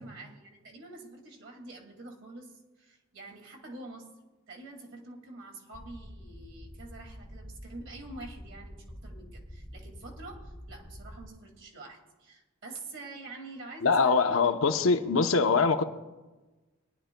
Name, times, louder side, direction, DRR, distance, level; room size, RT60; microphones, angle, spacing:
voice 1, 0.0-4.1 4.5-14.4 14.7-15.0 15.8-15.9, right 2 dB, 60° right, 2 dB, 2.1 m, -46 dB
sound 1, 5.7-11.3, equal, ahead, 0.7 m, -47 dB
voice 2, 13.8-15.8, left 4 dB, 75° left, 7 dB, 0.8 m, -23 dB
21.0 x 11.5 x 2.2 m, 1.1 s
head